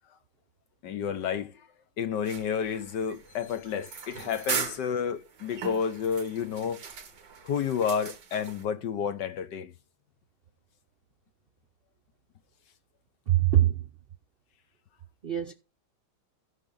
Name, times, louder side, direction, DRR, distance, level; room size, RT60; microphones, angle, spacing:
voice 1, 0.8-1.7 2.0-6.8 7.4-9.7, left 7 dB, 65° left, 1.6 m, -30 dB
sound 1, 2.2-8.6, right 6 dB, 60° right, 2.0 m, -39 dB
voice 2, 13.3-13.9 15.2-15.5, right 13 dB, 85° right, 0.5 m, -23 dB
16.5 x 5.6 x 3.9 m
omnidirectional pair, 2.1 m